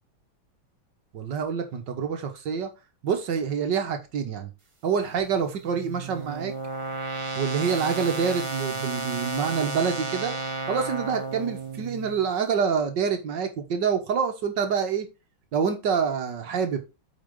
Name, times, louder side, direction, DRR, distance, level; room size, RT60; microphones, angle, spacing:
voice 1, 1.1-2.7 3.0-4.5 4.8-6.5 7.4-10.3 10.7-15.1 15.5-16.8, right 6 dB, 60° right, 6 dB, 1.8 m, -26 dB
sound 1, 5.2-12.3, right 3 dB, 30° right, 0.5 m, -33 dB
8.6 x 5.0 x 3.7 m, 0.27 s
omnidirectional pair, 2.2 m